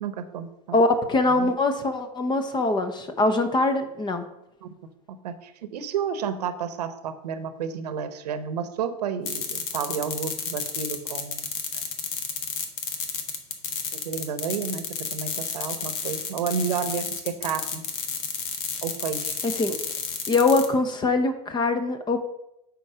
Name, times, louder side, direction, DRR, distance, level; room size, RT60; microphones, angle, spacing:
voice 1, 0.0-0.8 1.3-1.5 4.6-4.7 5.1-11.5 14.0-14.8 15.1-17.9 18.8-19.4, right 7 dB, 80° right, 10 dB, 1.0 m, -31 dB
voice 2, 0.7-4.3 19.4-19.8 20.3-22.2, left 2 dB, 20° left, 9 dB, 1.0 m, -23 dB
sound 1, 9.3-20.7, left 6 dB, 60° left, 1.5 m, -31 dB
8.6 x 4.5 x 5.6 m, 0.86 s
hypercardioid pair, 110°, 20 cm